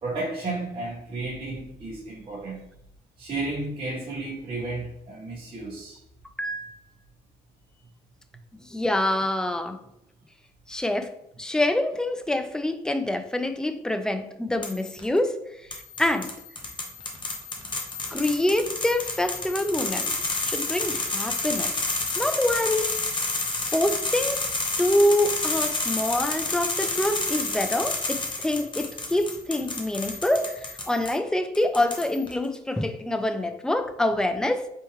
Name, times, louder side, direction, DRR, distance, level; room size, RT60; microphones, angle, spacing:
voice 1, 0.0-2.6 3.2-6.0, right 2 dB, 30° right, 1.2 m, -33 dB
voice 2, 6.4-6.8 8.7-9.8 10.7-11.1 11.4-15.4 15.7-16.3 18.1-21.8 22.2-23.0 23.7-24.4 24.8-34.7, left 1 dB, 5° left, 0.4 m, -26 dB
sound 1, 14.6-15.0 15.7-31.1 31.5-32.3, left 3 dB, 30° left, 1.0 m, -30 dB
4.3 x 3.5 x 3.0 m
cardioid pair, 110°, 17 cm